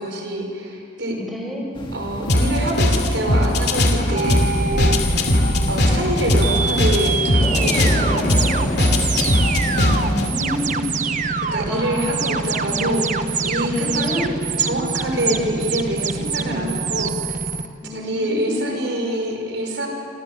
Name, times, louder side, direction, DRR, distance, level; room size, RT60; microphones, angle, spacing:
voice 1, 0.0-1.2 1.9-5.3 5.7-8.9 11.5-14.3 14.6-17.4 17.9-19.9, right 1 dB, 70° right, 2 dB, 5.4 m, -26 dB
voice 2, 1.1-1.8 5.7-6.0 9.6-11.0 11.7-12.3 12.7-13.3 13.6-14.3 15.2-15.5 16.3-16.8 17.8-18.8, equal, ahead, -1 dB, 5.0 m, -29 dB
sound 1, 1.7-10.8, left 1 dB, 25° left, 1.9 m, -30 dB
sound 2, 2.3-10.3, left 1 dB, 60° left, 2.7 m, -20 dB
sound 3, 4.1-17.7, right 4 dB, 40° right, 1.1 m, -25 dB
27.5 x 26.0 x 7.5 m, 2.6 s
head